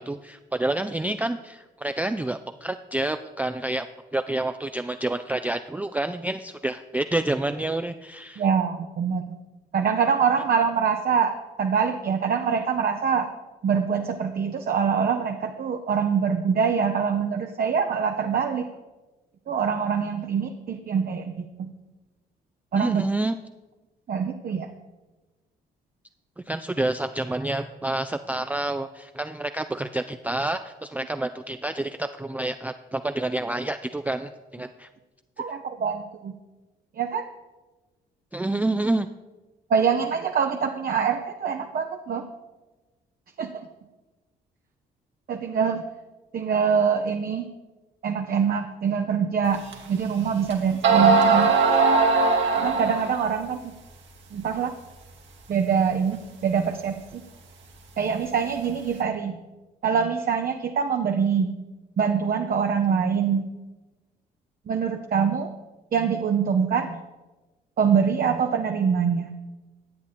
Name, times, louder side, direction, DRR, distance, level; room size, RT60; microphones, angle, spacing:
voice 1, 0.0-3.9 4.1-8.4 22.8-23.4 26.5-34.9 38.3-39.1, right 2 dB, 5° right, 7 dB, 0.4 m, -28 dB
voice 2, 8.4-9.2 9.7-13.3 13.6-18.7 19.5-21.7 22.7-23.0 24.1-24.7 35.4-36.3 37.0-37.3 39.7-42.2 43.4-43.7 45.3-45.8 46.3-47.5 48.0-51.5 52.6-53.7 54.3-54.8 55.5-57.2 58.0-59.4 59.8-61.6 62.0-63.5 64.7-65.5 65.9-67.0 67.8-69.3, right 6 dB, 45° right, 5 dB, 0.7 m, -24 dB
sound 1, 49.7-49.8 50.5-50.6 50.8-53.3, right 4 dB, 65° right, 1.5 m, -19 dB
11.0 x 8.2 x 4.2 m, 1.2 s
hypercardioid pair, 50°, 21 cm